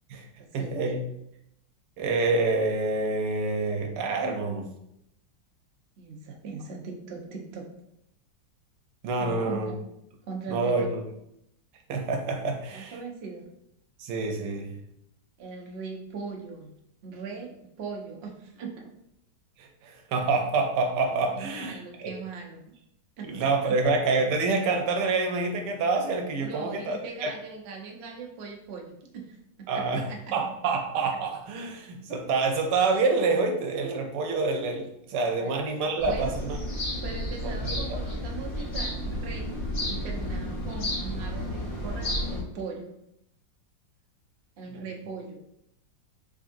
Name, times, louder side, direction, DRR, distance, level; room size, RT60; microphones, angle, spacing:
voice 1, 0.5-1.0 2.0-4.7 9.0-9.7 10.5-11.0 11.9-13.0 14.0-14.7 19.6-22.1 23.3-27.3 29.7-30.0 30.3-36.6 37.4-37.8 44.7-44.8, right 3 dB, 70° right, 3 dB, 1.2 m, -27 dB
voice 2, 6.0-7.7 9.2-9.8 10.2-10.9 12.7-13.4 15.4-16.7 17.0-17.5 17.8-18.7 21.2-22.7 23.2-23.3 23.6-23.8 26.4-30.3 35.4-35.5 36.0-36.3 37.0-39.6 39.9-43.0 44.6-45.4, right 4 dB, 90° right, 1 dB, 0.5 m, -40 dB
sound 1, 36.0-42.4, left 1 dB, 55° left, 1.3 m, -32 dB
3.7 x 3.4 x 2.5 m, 0.78 s
omnidirectional pair, 2.0 m